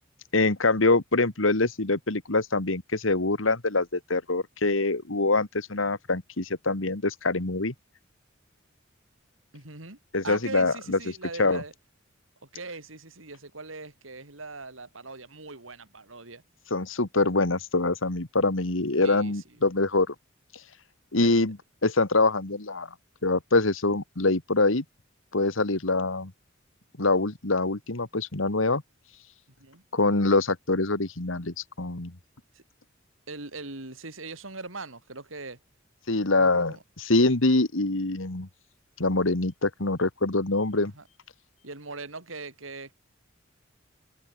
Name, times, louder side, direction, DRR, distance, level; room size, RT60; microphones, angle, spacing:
voice 1, 0.3-7.7 10.1-11.0 11.4-11.6 16.7-20.1 21.1-21.6 21.8-22.9 23.2-24.8 25.3-26.3 27.0-28.8 29.9-32.1 36.1-36.8 37.0-38.5 39.0-40.9, left 2 dB, 80° left, 2.1 m, -24 dB
voice 2, 9.5-10.0 10.2-11.7 12.4-16.4 19.0-19.7 21.2-21.3 29.6-29.8 32.5-32.6 33.3-35.6 36.4-36.8 40.8-41.0 41.6-42.9, right 3 dB, 85° right, 4.2 m, -41 dB
head